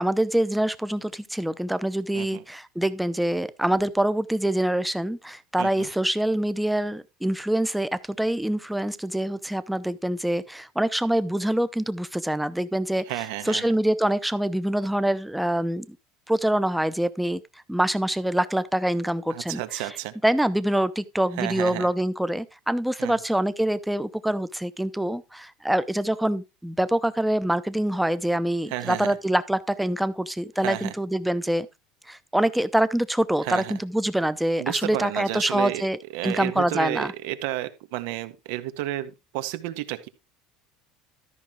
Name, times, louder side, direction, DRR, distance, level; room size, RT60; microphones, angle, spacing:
voice 1, 0.0-16.0 16.3-17.4 17.7-19.9 20.2-31.7 32.1-36.0 36.2-37.1, right 1 dB, 5° right, 0.7 m, -25 dB
voice 2, 5.6-5.9 13.1-13.7 19.3-20.1 21.4-21.9 23.0-23.2 28.7-29.1 30.6-30.9 33.4-33.8 34.6-35.8 36.1-40.1, right 15 dB, 80° right, 1.6 m, -31 dB
13.0 x 6.0 x 4.8 m
cardioid pair, 150°, 0 cm